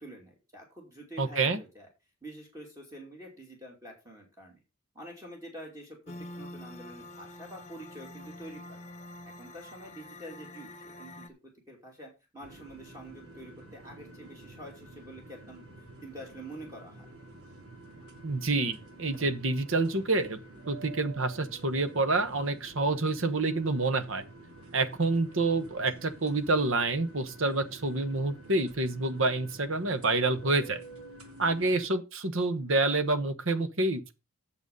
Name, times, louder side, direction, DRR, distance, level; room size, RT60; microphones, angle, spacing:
voice 1, 0.0-1.9 2.2-4.6 4.9-8.9 9.2-11.3 11.7-17.1, right 1 dB, 15° right, 2.6 m, -47 dB
voice 2, 1.2-1.6 18.2-20.4 20.7-24.2 24.7-30.8 31.4-34.1, right 2 dB, 60° right, 1.1 m, -28 dB
sound 1, 6.1-11.3, left 1 dB, 30° left, 1.1 m, -46 dB
sound 2, 12.4-31.9, right 2 dB, 80° right, 3.1 m, -50 dB
9.0 x 7.0 x 5.3 m
head